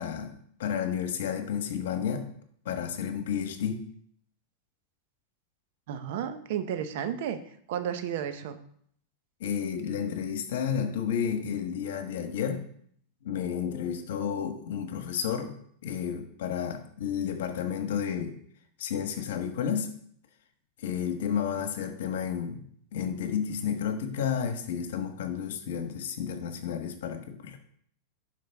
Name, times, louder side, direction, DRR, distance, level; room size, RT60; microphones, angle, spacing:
voice 1, 0.0-2.3 2.6-3.8 9.4-12.6 13.2-18.4 18.8-19.9 20.8-22.6 22.9-27.6, left 8 dB, 80° left, 7 dB, 1.2 m, -31 dB
voice 2, 5.9-7.4 7.7-8.6, right 9 dB, 65° right, 10 dB, 0.9 m, -32 dB
11.5 x 5.1 x 3.5 m, 0.64 s
supercardioid pair, 135°, 0 cm